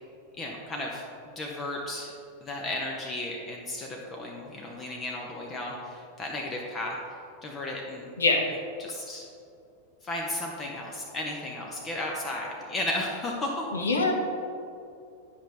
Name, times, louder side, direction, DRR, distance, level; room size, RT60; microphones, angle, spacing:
voice 1, 0.4-2.1 2.4-7.0 7.4-8.1 8.8-9.3 10.0-13.7, left 1 dB, 25° left, -1 dB, 0.9 m, -34 dB
voice 2, 13.7-14.1, left 3 dB, 70° left, 1 dB, 1.1 m, -23 dB
10.0 x 5.6 x 3.4 m, 2.5 s
figure-of-eight pair, 90°, 0 cm